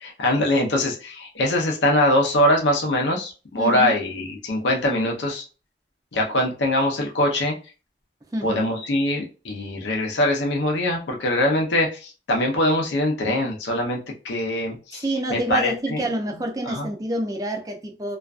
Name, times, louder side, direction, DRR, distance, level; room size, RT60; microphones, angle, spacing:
voice 1, 0.0-5.4 6.1-7.5 8.4-14.0 14.2-15.0 15.3-16.0 16.7-16.9, left 1 dB, 85° left, 0.6 m, -22 dB
voice 2, 3.6-3.9 8.3-8.6 14.9-18.2, right 1 dB, 20° right, 0.4 m, -27 dB
2.4 x 2.2 x 2.4 m
head